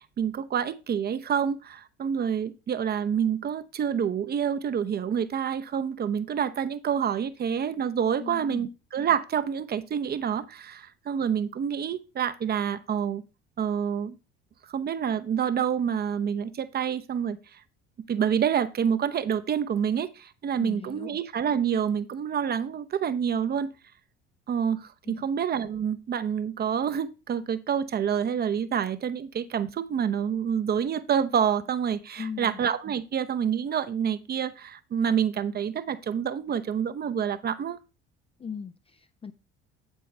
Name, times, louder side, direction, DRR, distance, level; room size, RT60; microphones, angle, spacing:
voice 1, 0.0-13.2 13.6-14.2 14.7-17.6 18.1-23.7 24.5-37.8, right 8 dB, 30° right, 13 dB, 0.7 m, -28 dB
voice 2, 8.2-8.7 20.6-21.2 25.0-25.2 32.2-32.6 38.4-39.3, left 6 dB, 15° left, 10 dB, 0.5 m, -38 dB
8.8 x 8.7 x 3.3 m, 0.29 s
figure-of-eight pair, 60°, 33 cm